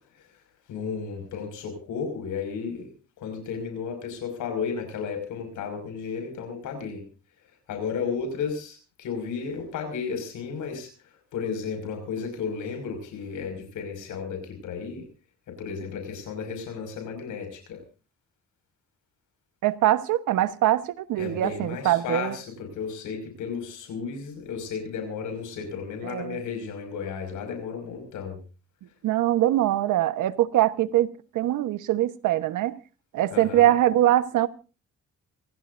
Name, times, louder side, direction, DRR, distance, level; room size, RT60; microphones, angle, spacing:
voice 1, 0.7-2.9 3.2-7.0 7.7-10.9 11.3-15.1 15.5-17.8 21.2-28.4 33.3-33.7, left 6 dB, 85° left, 5.9 m, -33 dB
voice 2, 19.6-22.4 26.0-26.4 29.0-32.8 33.1-34.5, right 13 dB, 85° right, 1.2 m, -23 dB
27.0 x 16.0 x 2.6 m
cardioid pair, 90°, 30 cm